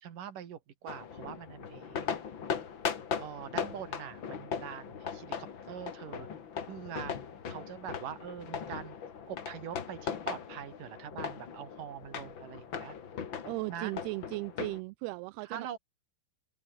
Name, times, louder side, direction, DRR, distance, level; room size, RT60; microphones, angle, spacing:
voice 1, 0.0-2.1 3.2-6.3 6.7-7.2 7.5-9.0 9.3-13.0 13.7-13.9 15.5-15.8, right 9 dB, 60° right, 3.8 m, -43 dB
sound 1, 0.9-14.8, left 7 dB, 40° left, 1.9 m, -39 dB
voice 2, 13.4-15.8, right 23 dB, 85° right, 2.5 m, -37 dB
open air
omnidirectional pair, 4.5 m